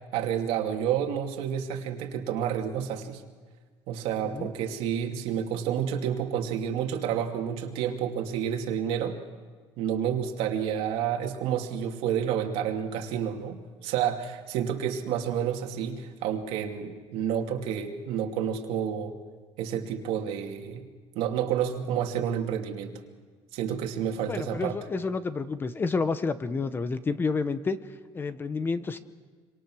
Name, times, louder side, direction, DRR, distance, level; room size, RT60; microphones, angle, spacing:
voice 1, 0.1-3.2 3.9-9.2 9.8-19.1 19.6-20.8 21.1-23.0 23.5-24.8, right 9 dB, 85° right, 3 dB, 2.6 m, -29 dB
voice 2, 24.3-27.8 28.1-29.0, left 4 dB, 20° left, 12 dB, 1.0 m, -29 dB
26.5 x 25.0 x 6.4 m, 1.5 s
cardioid pair, 145°, 10 cm